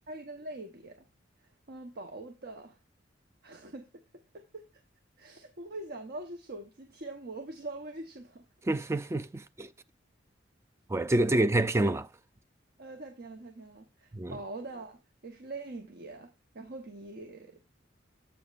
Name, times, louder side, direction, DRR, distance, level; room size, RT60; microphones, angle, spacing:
voice 1, 0.1-1.0 1.7-2.8 3.4-3.9 4.3-4.6 5.2-8.4 12.8-16.3 16.5-17.6, right 2 dB, 60° right, 0.9 m, -43 dB
voice 2, 8.7-9.7 10.9-12.1 14.1-14.4, right 1 dB, 15° right, 0.3 m, -27 dB
8.3 x 7.1 x 2.4 m
head